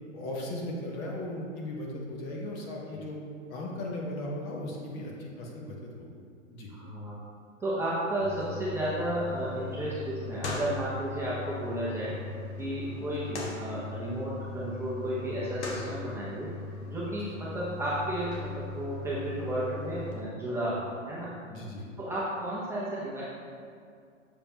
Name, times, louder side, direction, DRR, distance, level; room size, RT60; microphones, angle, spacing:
voice 1, 0.1-3.2 3.5-6.1 6.5-6.7 12.9-13.1 17.1-17.3 21.5-21.9, left 1 dB, 25° left, -2 dB, 0.9 m, -37 dB
voice 2, 6.7-7.2 7.6-12.2 12.6-21.3 22.0-23.2, right 1 dB, 5° right, -9 dB, 0.8 m, -33 dB
sound 1, 8.2-20.2, left 3 dB, 55° left, 1.3 m, -39 dB
6.9 x 5.1 x 2.9 m, 2.2 s
figure-of-eight pair, 120°, 40 cm